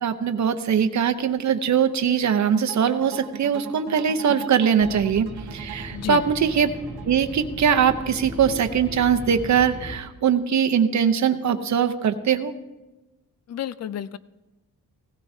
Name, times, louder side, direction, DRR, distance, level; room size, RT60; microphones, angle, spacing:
voice 1, 0.0-6.7 7.1-12.5, right 7 dB, 50° right, 8 dB, 0.8 m, -21 dB
sound 1, 2.7-7.8, right 10 dB, 85° right, 1.0 m, -40 dB
sound 2, 4.8-10.0, right 1 dB, 5° right, 2.4 m, -37 dB
voice 2, 5.9-6.2 13.5-14.2, left 10 dB, 45° left, 16 dB, 0.4 m, -31 dB
17.0 x 16.0 x 2.7 m, 1.1 s
wide cardioid pair, 165°, 36 cm